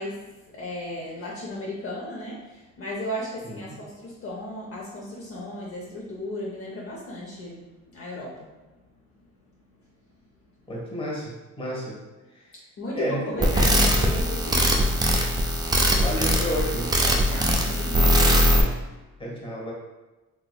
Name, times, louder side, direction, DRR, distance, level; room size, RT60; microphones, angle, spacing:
voice 1, 0.0-7.6 7.9-8.5 12.8-15.0 17.0-18.4, left 1 dB, 50° left, -4 dB, 0.7 m, -35 dB
voice 2, 10.7-12.0 12.9-13.5 16.0-16.9 19.2-19.7, equal, 20° left, -4 dB, 1.2 m, -30 dB
sound 1, 13.4-18.6, equal, 15° right, 0.4 m, -21 dB
3.5 x 2.9 x 2.3 m, 1.1 s
cardioid pair, 90°, 30 cm